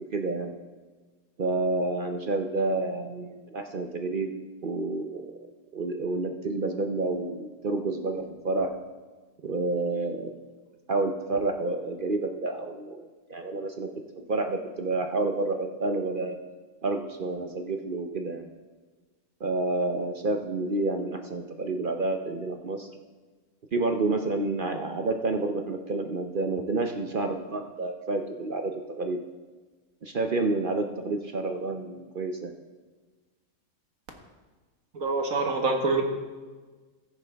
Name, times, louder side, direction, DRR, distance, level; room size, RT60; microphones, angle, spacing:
voice 1, 0.1-0.6 1.4-4.3 4.6-5.3 5.7-8.7 9.4-10.3 10.9-13.9 14.3-16.4 16.8-18.5 19.4-22.9 23.7-29.2 30.0-32.5, right 2 dB, 50° right, 5 dB, 0.7 m, -29 dB
voice 2, 34.9-36.0, right 3 dB, 65° right, 3 dB, 1.7 m, -25 dB
14.5 x 10.0 x 3.4 m, 1.3 s
omnidirectional pair, 1.5 m